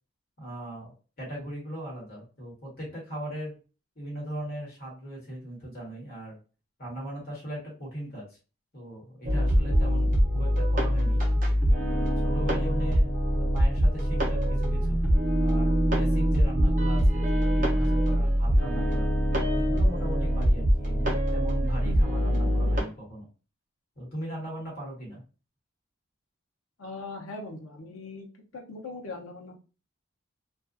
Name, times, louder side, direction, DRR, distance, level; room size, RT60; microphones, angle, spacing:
voice 1, 0.4-3.6 3.9-6.4 6.8-8.4 8.7-10.1 10.3-11.2 11.9-15.0 15.4-19.1 19.5-23.3 23.9-25.2, right 1 dB, 45° left, -5 dB, 1.3 m, -38 dB
sound 1, 9.2-22.8, equal, 40° right, 0.6 m, -24 dB
voice 2, 26.8-28.3 28.5-29.6, left 3 dB, 90° left, 1 dB, 0.7 m, -40 dB
2.4 x 2.3 x 2.5 m, 0.35 s
head